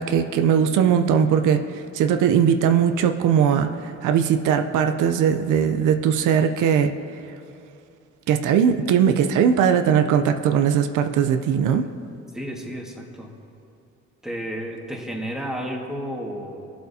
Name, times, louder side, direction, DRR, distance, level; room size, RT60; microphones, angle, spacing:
voice 1, 0.0-6.9 8.3-11.9, right 8 dB, 85° right, 7 dB, 0.6 m, -20 dB
voice 2, 12.3-13.3 14.2-16.7, equal, ahead, -1 dB, 1.7 m, -32 dB
19.0 x 7.8 x 2.8 m, 2.6 s
cardioid pair, 90°, 30 cm